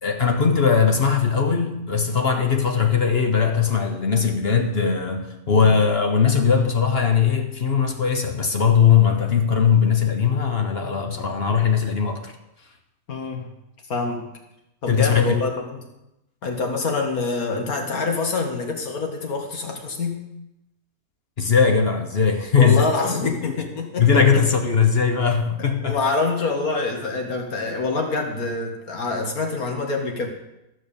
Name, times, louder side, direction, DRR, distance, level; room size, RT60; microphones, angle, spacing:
voice 1, 0.0-12.3 14.9-15.3 21.4-22.9 23.4-23.6 24.0-26.0, left 6 dB, 45° left, 1.2 m, -19 dB
voice 2, 13.1-13.5 13.9-14.2 14.8-15.8 16.4-20.2 22.6-24.4 25.6-30.3, left 3 dB, 80° left, 2.3 m, -26 dB
13.5 x 6.4 x 7.1 m
omnidirectional pair, 1.5 m